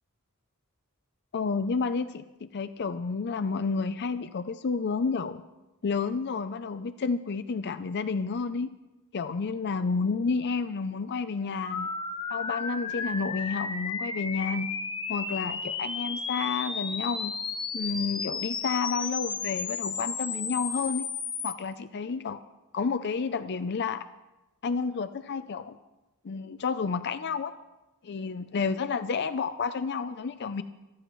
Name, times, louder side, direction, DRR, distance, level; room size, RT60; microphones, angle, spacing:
voice 1, 1.3-2.2 2.5-5.4 5.8-8.7 9.1-11.9 12.3-14.7 15.1-17.3 17.7-21.0 21.4-22.4 22.7-24.0 24.6-25.8 26.2-27.5 28.0-30.6, left 5 dB, 50° left, 12 dB, 0.5 m, -30 dB
sound 1, 11.6-21.5, left 5 dB, 20° left, 0.9 m, -33 dB
26.0 x 14.0 x 3.1 m, 1.0 s
head